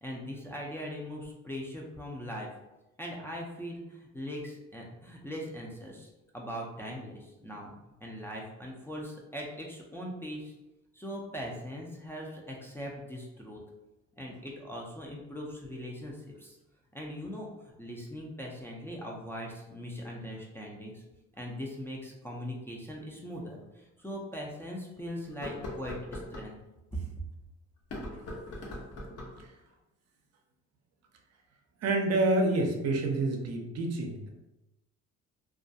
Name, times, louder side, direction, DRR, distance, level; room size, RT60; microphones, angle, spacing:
voice 1, 0.0-2.5 3.0-7.7 8.0-10.5 10.9-13.6 14.2-16.6 16.9-21.0 21.4-26.6 26.9-27.0, equal, 10° left, -3 dB, 0.4 m, -40 dB
sound 1, 23.3-23.4 24.0-24.1 25.3-26.5 27.8-29.5, left 1 dB, 55° left, 0.8 m, -41 dB
voice 2, 31.8-34.3, right 2 dB, 60° right, 2 dB, 0.5 m, -28 dB
2.3 x 2.1 x 2.6 m, 0.97 s
cardioid pair, 90°, 30 cm